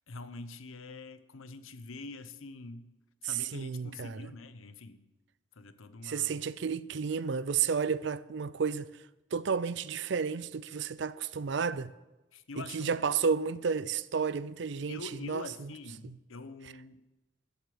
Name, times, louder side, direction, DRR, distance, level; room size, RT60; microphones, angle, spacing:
voice 1, 0.1-2.9 3.2-5.0 5.6-6.3 12.3-13.1 14.9-17.0, left 3 dB, 85° left, 0.9 m, -45 dB
voice 2, 3.2-4.3 6.0-8.9 9.3-11.9 12.6-15.7 16.0-16.1, right 6 dB, 60° right, 0.5 m, -32 dB
12.5 x 8.1 x 8.6 m
head